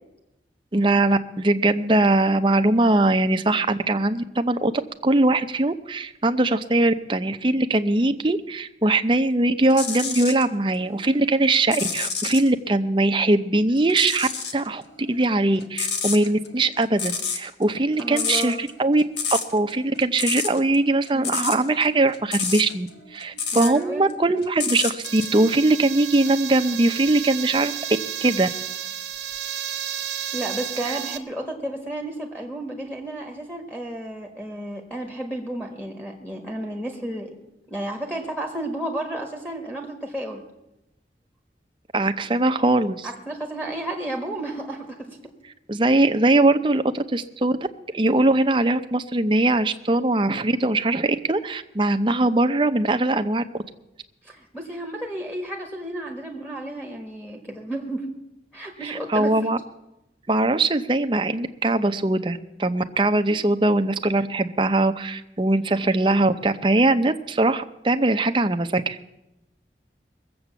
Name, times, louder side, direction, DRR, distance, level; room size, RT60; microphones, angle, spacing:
voice 1, 0.7-4.7 5.0-14.8 15.1-19.0 19.3-22.9 23.1-27.7 28.2-28.5 30.9-31.0 41.9-43.1 45.7-47.6 47.9-53.4 58.8-59.6 60.3-69.0, right 2 dB, 30° right, 9 dB, 0.6 m, -21 dB
sound 1, 9.7-10.4 10.9-12.5 13.9-14.7 14.9-23.8 24.1-25.4 26.1-26.3, left 6 dB, 80° left, 1.5 m, -29 dB
voice 2, 18.0-18.6 21.1-21.4 23.5-24.1 30.3-37.4 37.7-40.4 43.0-45.2 54.2-58.1 58.5-59.3, right 1 dB, 10° left, 1 dB, 1.5 m, -32 dB
sound 2, 25.0-31.2, right 10 dB, 80° right, 1.1 m, -32 dB
21.0 x 7.8 x 7.1 m, 0.92 s
head